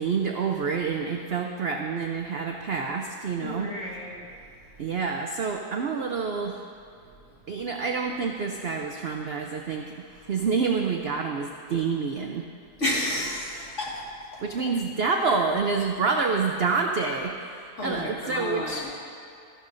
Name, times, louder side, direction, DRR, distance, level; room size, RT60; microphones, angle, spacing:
voice 1, 0.0-3.8 4.8-6.6 7.5-12.5 14.4-18.9, right 5 dB, 65° right, 3 dB, 0.6 m, -28 dB
voice 2, 3.4-4.3 12.8-14.4 17.8-18.9, left 1 dB, 45° left, -5 dB, 2.1 m, -31 dB
13.5 x 12.0 x 2.6 m, 2.5 s
omnidirectional pair, 1.7 m